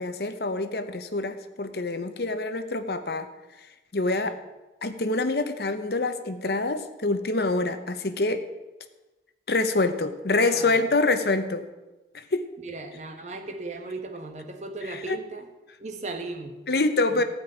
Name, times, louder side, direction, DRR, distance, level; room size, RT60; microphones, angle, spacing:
voice 1, 0.0-3.3 3.9-4.3 4.8-8.4 9.5-11.7 12.1-12.5 14.9-15.2 16.7-17.2, left 3 dB, 65° left, 10 dB, 0.9 m, -26 dB
voice 2, 10.3-10.8 12.6-15.5 15.8-16.6 17.1-17.2, right 3 dB, 40° right, 4 dB, 1.4 m, -37 dB
15.0 x 5.4 x 9.3 m, 1.1 s
head